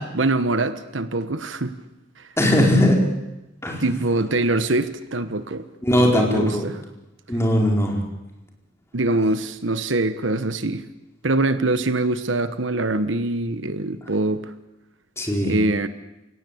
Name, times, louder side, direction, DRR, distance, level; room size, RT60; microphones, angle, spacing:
voice 1, 0.1-1.7 3.8-5.6 6.0-6.8 8.9-10.8 11.2-14.5 15.4-15.9, right 2 dB, 75° right, 12 dB, 1.3 m, -23 dB
voice 2, 2.4-3.0 3.6-3.8 5.8-6.7 7.3-8.0 15.2-15.5, left 1 dB, 15° left, 0 dB, 4.7 m, -19 dB
29.0 x 17.5 x 8.6 m, 0.97 s
head